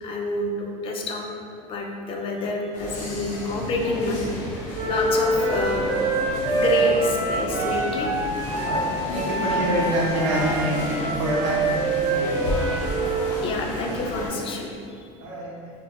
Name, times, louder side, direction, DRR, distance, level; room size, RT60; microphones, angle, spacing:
voice 1, 0.0-1.3 1.6-4.5 4.9-5.9 6.5-8.1 13.4-15.1, left 2 dB, 35° left, 1 dB, 0.4 m, -28 dB
sound 1, 2.7-14.3, left 1 dB, 75° left, 0.6 m, -32 dB
Wind instrument woodwind instrument, 4.7-13.3, right 2 dB, 45° right, 0.6 m, -25 dB
voice 2, 8.6-12.9 15.2-15.7, right 1 dB, 90° right, -5 dB, 0.7 m, -27 dB
2.1 x 2.1 x 2.8 m, 2.4 s
supercardioid pair, 110°, 15 cm